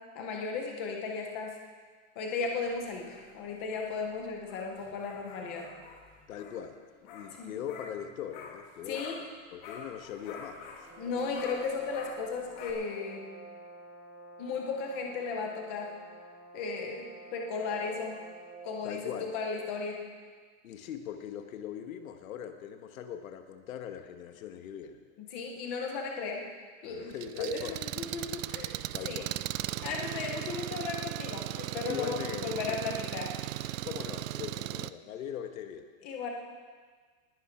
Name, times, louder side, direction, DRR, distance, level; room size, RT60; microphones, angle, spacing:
voice 1, 0.1-1.5 2.2-5.7 7.4-7.5 8.9-9.2 11.0-13.3 14.4-15.9 16.5-18.2 18.6-20.0 25.2-26.4 26.8-29.2 29.8-33.3 36.0-36.3, left 4 dB, 10° left, 1 dB, 0.4 m, -35 dB
sound 1, 2.3-9.4 9.6-12.7, left 4 dB, 35° left, 1.7 m, -49 dB
voice 2, 6.3-6.8 7.1-9.0 9.5-10.9 18.8-19.3 20.6-25.0 26.9-27.8 28.9-29.4 31.9-32.8 33.8-35.9, left 9 dB, 80° left, 7 dB, 1.5 m, -41 dB
sound 2, 10.8-19.8, right 3 dB, 45° right, 4.0 m, -48 dB
Engine, 27.1-34.9, right 15 dB, 70° right, 0.5 m, -37 dB
19.5 x 11.0 x 4.4 m, 1.5 s
supercardioid pair, 180°, 41 cm